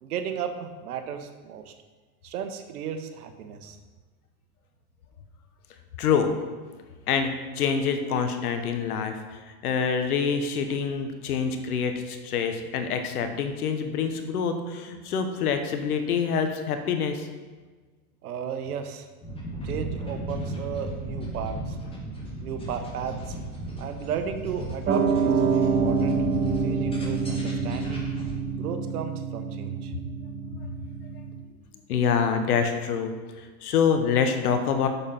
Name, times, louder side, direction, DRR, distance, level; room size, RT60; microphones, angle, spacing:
voice 1, 0.0-1.7 2.2-3.8 18.2-19.1 19.6-21.8 22.4-23.4 23.8-26.2 26.6-28.1 28.5-29.9, right 7 dB, 80° right, 8 dB, 1.2 m, -34 dB
voice 2, 6.0-6.3 7.1-17.3 31.9-34.9, left 6 dB, 80° left, 7 dB, 1.3 m, -26 dB
sound 1, 19.2-28.3, right 2 dB, 10° left, 2.2 m, -35 dB
Piano, 24.9-31.4, right 5 dB, 25° right, 1.1 m, -27 dB
7.2 x 6.9 x 5.6 m, 1.4 s
hypercardioid pair, 115°, 44 cm